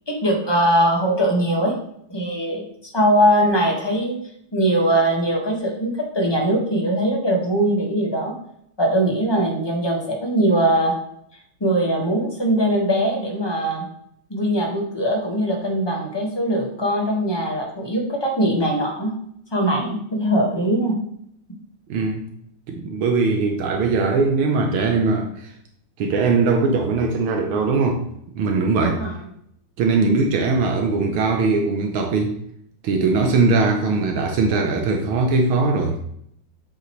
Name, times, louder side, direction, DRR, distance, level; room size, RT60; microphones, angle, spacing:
voice 1, 0.1-1.7 2.1-4.2 4.5-8.3 8.8-10.9 11.6-13.8 14.3-19.1 19.5-21.0 28.8-29.1, right 1 dB, 15° left, -1 dB, 1.3 m, -21 dB
voice 2, 21.9-22.2 22.7-25.5 26.0-28.0 28.4-29.0 29.8-32.4 32.8-36.0, right 3 dB, 75° right, 3 dB, 1.7 m, -20 dB
7.8 x 6.6 x 3.1 m, 0.72 s
omnidirectional pair, 2.4 m